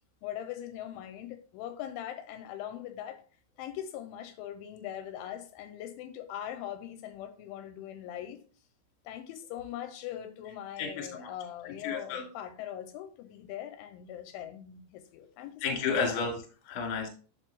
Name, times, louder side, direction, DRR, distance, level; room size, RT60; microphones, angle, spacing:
voice 1, 0.2-3.2 3.6-8.4 9.1-16.4, left 11 dB, 85° left, 3.0 m, -41 dB
voice 2, 10.8-11.3 11.8-12.2 15.6-17.1, left 5 dB, 50° left, 2.2 m, -32 dB
9.1 x 6.3 x 2.2 m
omnidirectional pair, 5.5 m